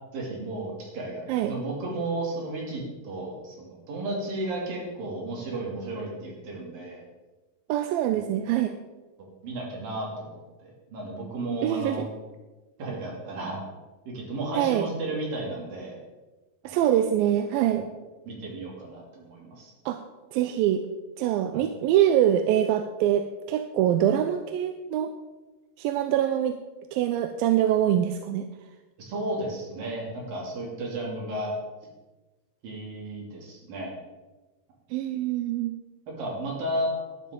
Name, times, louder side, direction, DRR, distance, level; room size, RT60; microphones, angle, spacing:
voice 1, 0.1-7.1 9.4-12.1 12.8-13.6 14.1-16.0 16.6-16.8 18.2-19.7 21.5-21.6 29.0-31.5 32.6-33.9 36.2-36.9, right 2 dB, 75° right, -2 dB, 4.4 m, -33 dB
voice 2, 7.7-8.7 11.6-12.1 14.6-14.9 16.6-17.9 19.9-20.0 20.3-20.8 21.2-25.1 25.8-26.6 26.9-28.5 34.9-35.7, right 11 dB, 90° right, 7 dB, 2.4 m, -24 dB
12.0 x 11.0 x 3.8 m, 1.2 s
omnidirectional pair, 4.1 m